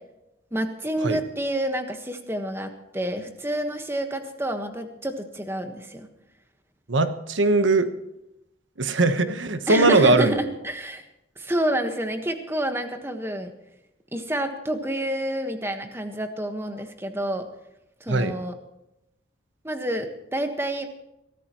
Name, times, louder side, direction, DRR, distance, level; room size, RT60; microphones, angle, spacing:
voice 1, 0.5-6.1 9.3-9.4 9.7-11.0 11.4-13.5 14.1-17.5 18.0-18.5 19.6-20.9, right 1 dB, 15° right, 6 dB, 1.4 m, -28 dB
voice 2, 6.9-7.9 8.8-10.3 18.1-18.4, right 2 dB, 80° right, 9 dB, 1.2 m, -20 dB
22.5 x 13.5 x 3.1 m, 0.88 s
head